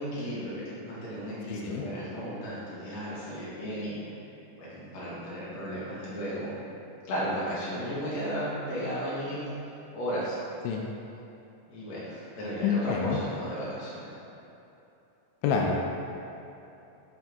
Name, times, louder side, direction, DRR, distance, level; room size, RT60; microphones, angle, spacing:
voice 1, 0.0-4.0 4.6-6.6 7.1-9.5 9.9-10.4 11.6-14.1, equal, 60° left, -9 dB, 2.7 m, -34 dB
voice 2, 1.5-1.8 10.6-10.8 12.6-13.2 15.4-15.8, left 6 dB, 90° left, 0 dB, 2.3 m, -27 dB
7.5 x 4.3 x 3.5 m, 2.9 s
omnidirectional pair, 3.8 m